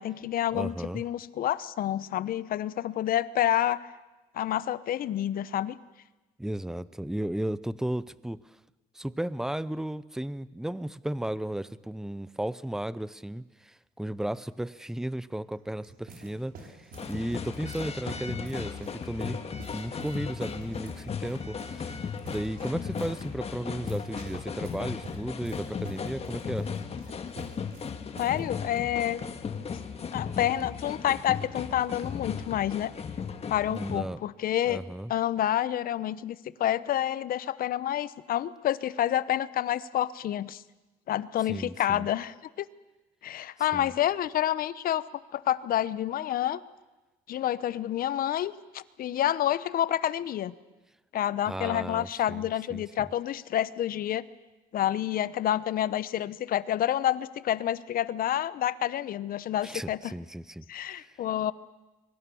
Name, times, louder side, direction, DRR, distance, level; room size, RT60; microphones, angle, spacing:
voice 1, 0.0-3.8 4.3-5.8 28.2-29.2 30.1-32.9 33.5-34.8 35.1-40.6 41.1-42.7 43.2-45.1 45.3-46.6 47.3-50.5 51.1-54.3 54.7-60.1 60.7-61.5, left 11 dB, 60° left, 17 dB, 0.9 m, -28 dB
voice 2, 0.5-1.0 6.4-8.4 8.9-19.4 19.7-22.0 22.3-26.7 33.7-34.2 34.6-35.1 41.5-42.1 43.7-43.9 51.4-52.8 59.6-61.2, right 1 dB, 5° right, 18 dB, 0.7 m, -34 dB
sound 1, 15.5-28.4 28.7-28.8 29.6-29.9, right 4 dB, 55° right, 4.1 m, -49 dB
sound 2, 16.9-34.0, left 6 dB, 40° left, 1.9 m, -36 dB
24.0 x 23.0 x 7.1 m, 1.1 s
cardioid pair, 110°, 17 cm